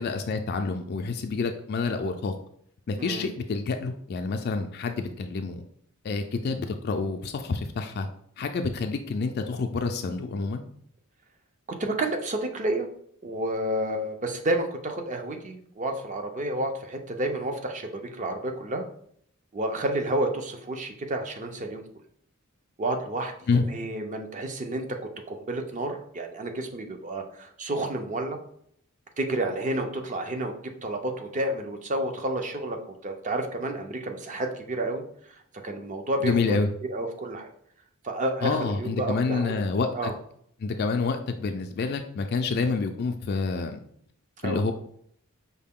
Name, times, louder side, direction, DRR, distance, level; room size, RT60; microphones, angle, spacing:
voice 1, 0.0-2.3 2.9-5.6 6.0-8.1 8.4-10.6 23.5-23.6 36.2-36.7 38.4-39.9 40.6-43.8 44.4-44.7, left 4 dB, 50° left, 6 dB, 0.3 m, -28 dB
voice 2, 11.8-12.9 13.2-18.8 19.5-21.8 22.8-23.3 23.7-24.8 25.3-28.4 29.2-30.5 30.8-35.0 35.6-36.6 36.9-37.5 38.0-39.5 39.9-40.1 44.4-44.6, right 1 dB, 35° right, 5 dB, 0.5 m, -30 dB
5.5 x 2.2 x 3.6 m, 0.65 s
head